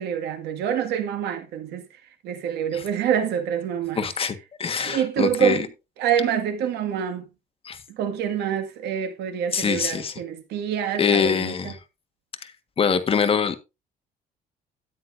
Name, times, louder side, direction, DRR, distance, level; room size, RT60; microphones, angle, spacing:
voice 1, 0.0-1.8 2.2-4.1 4.8-5.6 6.0-7.3 7.9-11.7, right 8 dB, 80° right, 2.0 m, -26 dB
voice 2, 3.9-5.7 7.6-7.8 9.5-10.2 11.0-11.8 12.4-12.5 12.8-13.6, left 6 dB, 35° left, 1.5 m, -24 dB
13.0 x 9.9 x 2.6 m
cardioid pair, 110°, 17 cm